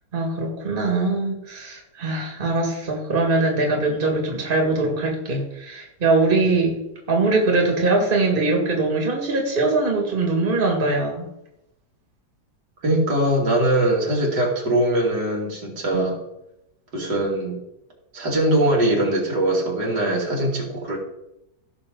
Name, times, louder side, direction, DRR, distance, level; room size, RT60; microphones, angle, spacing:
voice 1, 0.1-6.8 7.1-11.3 15.9-16.1, right 3 dB, 30° right, 1 dB, 2.1 m, -22 dB
voice 2, 12.8-16.2 16.9-17.6 18.1-21.0, right 1 dB, 85° right, -3 dB, 3.4 m, -21 dB
16.5 x 6.3 x 3.9 m, 0.87 s
omnidirectional pair, 1.8 m